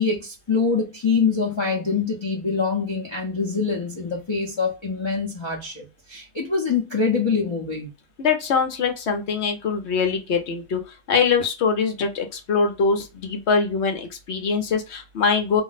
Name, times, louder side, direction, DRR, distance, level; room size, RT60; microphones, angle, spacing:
voice 1, 0.0-7.9, left 5 dB, 35° left, 0.4 m, -24 dB
voice 2, 8.2-10.8 11.1-15.6, left 5 dB, 60° left, 0.9 m, -23 dB
2.5 x 2.1 x 3.9 m
omnidirectional pair, 1.4 m